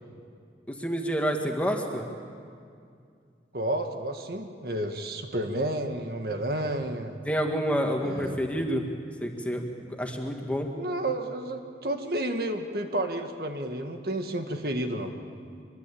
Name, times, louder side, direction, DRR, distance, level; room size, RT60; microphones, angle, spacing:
voice 1, 0.7-2.1 7.3-8.9 9.2-10.7, equal, 10° left, 2 dB, 2.0 m, -28 dB
voice 2, 3.5-7.2 8.0-8.4 10.7-15.1, right 1 dB, 55° right, 5 dB, 1.8 m, -31 dB
25.0 x 23.0 x 8.5 m, 2.3 s
head